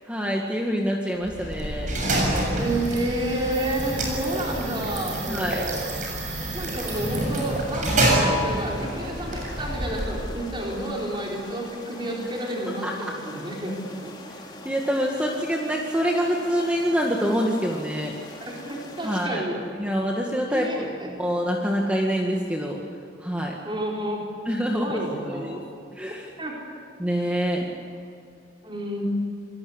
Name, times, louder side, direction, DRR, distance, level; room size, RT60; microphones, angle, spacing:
voice 1, 0.1-1.9 5.3-5.7 12.8-13.1 14.6-18.1 19.0-19.4 19.8-22.8 23.2-23.5 24.5-25.0 25.3-25.6 26.0-26.3 27.0-27.7, equal, 5° right, -1 dB, 2.0 m, -26 dB
sound 1, 1.2-10.5, right 1 dB, 40° right, 7.3 m, -27 dB
voice 2, 2.5-5.7 6.1-13.7 14.0-14.1 18.4-19.6 20.5-21.1 23.7-24.2 24.7-25.6 26.4-26.6 28.6-29.0, right 1 dB, 25° right, -2 dB, 4.3 m, -30 dB
sound 2, 6.8-19.3, left 2 dB, 25° left, 3.3 m, -43 dB
28.0 x 21.0 x 8.2 m, 2.5 s
head